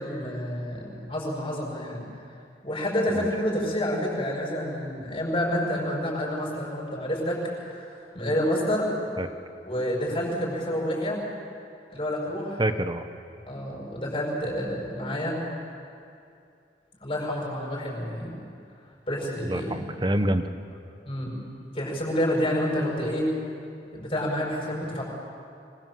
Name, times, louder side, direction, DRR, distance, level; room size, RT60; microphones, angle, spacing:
voice 1, 0.0-2.0 2.6-8.9 9.6-11.2 11.9-12.6 13.5-15.4 17.0-18.3 19.1-19.8 21.1-21.3 21.7-23.3 23.9-25.0, equal, 30° left, -2 dB, 7.2 m, -28 dB
voice 2, 12.6-13.1 19.5-20.5, right 1 dB, 25° right, 9 dB, 1.1 m, -26 dB
25.5 x 22.5 x 7.7 m, 2.5 s
head